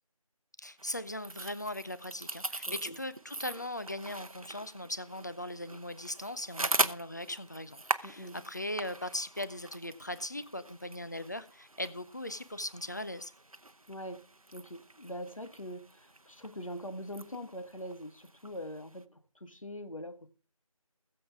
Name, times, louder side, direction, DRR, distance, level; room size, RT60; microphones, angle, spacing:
voice 1, 0.6-13.3, left 1 dB, 30° left, 0.7 m, -39 dB
sound 1, 0.8-19.0, right 2 dB, 70° right, 1.0 m, -41 dB
voice 2, 2.7-3.0 8.0-8.4 13.9-14.3 14.5-20.3, equal, 65° left, 1.8 m, -43 dB
21.5 x 7.4 x 3.5 m
figure-of-eight pair, 165°, 19 cm